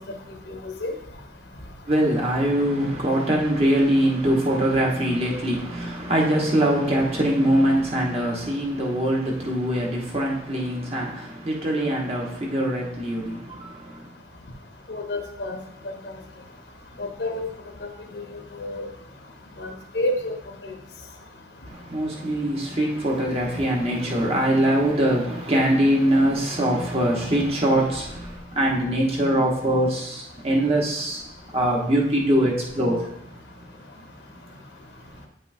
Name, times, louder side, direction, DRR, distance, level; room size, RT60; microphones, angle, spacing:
voice 1, 0.5-0.9 14.9-15.6 16.0-16.2 17.0-17.4 18.1-18.2 18.6-18.9 19.6-20.1 20.6-20.7, left 1 dB, 70° left, 3 dB, 1.0 m, -29 dB
voice 2, 1.9-14.1 21.7-31.2 31.5-33.1, right 1 dB, 35° right, -2 dB, 1.2 m, -23 dB
8.8 x 5.5 x 2.7 m, 0.78 s
head